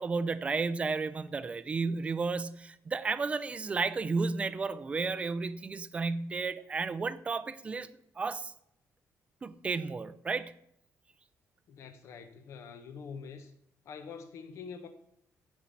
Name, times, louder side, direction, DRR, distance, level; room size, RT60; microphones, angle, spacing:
voice 1, 0.0-7.9 8.2-8.5 9.4-10.5, right 4 dB, 20° right, 0.5 m, -33 dB
voice 2, 11.7-13.5 13.8-14.9, left 6 dB, 60° left, 1.1 m, -45 dB
14.5 x 5.6 x 8.5 m
cardioid pair, 180°, 6 cm